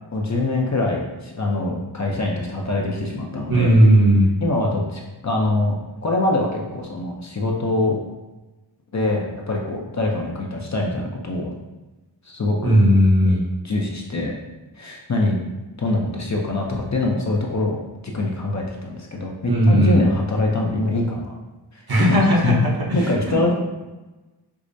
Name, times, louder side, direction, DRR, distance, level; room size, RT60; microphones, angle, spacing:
voice 1, 0.1-3.7 4.4-8.0 8.9-11.5 12.3-12.8 13.2-14.3 14.7-15.4 15.8-21.4 21.7-22.2 22.4-22.6 22.9-23.5, left 2 dB, 40° left, -1 dB, 0.6 m, -24 dB
voice 2, 3.5-4.3 12.6-13.4 19.5-20.1 21.9-23.4, equal, 50° right, -3 dB, 1.0 m, -16 dB
4.7 x 2.1 x 2.6 m, 1.1 s
cardioid pair, 50°, 47 cm